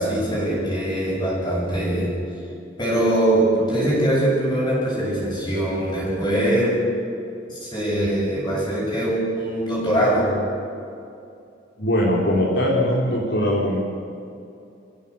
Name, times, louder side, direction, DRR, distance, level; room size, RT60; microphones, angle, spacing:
voice 1, 0.0-2.3 2.8-6.8 7.5-10.5, right 1 dB, 25° left, -5 dB, 7.3 m, -22 dB
voice 2, 11.8-13.8, left 1 dB, 65° left, -5 dB, 3.8 m, -21 dB
28.0 x 16.5 x 7.1 m, 2.6 s
head